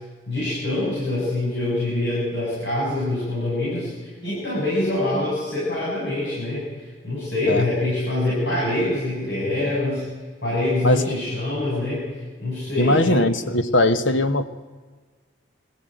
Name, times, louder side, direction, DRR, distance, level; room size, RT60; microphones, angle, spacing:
voice 1, 0.3-6.6 7.0-10.1 10.4-12.1 12.4-13.2, left 2 dB, 65° left, -7 dB, 7.4 m, -25 dB
voice 2, 10.8-11.2 12.8-14.5, left 1 dB, 85° left, 11 dB, 1.3 m, -20 dB
21.5 x 14.5 x 9.2 m, 1.4 s
head